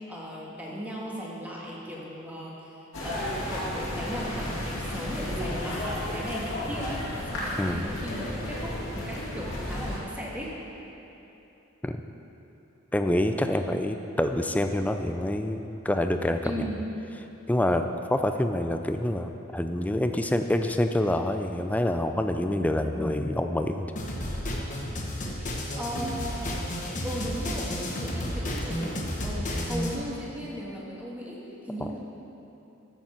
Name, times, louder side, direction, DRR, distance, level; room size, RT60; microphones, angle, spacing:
voice 1, 0.0-10.5 16.4-16.8 25.3-26.5 27.0-32.1, equal, 10° right, -5 dB, 1.6 m, -37 dB
sound 1, 2.9-10.0, left 1 dB, 65° left, 2.1 m, -33 dB
voice 2, 12.9-16.7 17.5-17.8 18.1-23.9, left 1 dB, 5° left, 7 dB, 0.4 m, -26 dB
sound 2, 24.0-30.0, equal, 40° left, 1.2 m, -32 dB
13.5 x 7.1 x 4.4 m, 3.0 s
head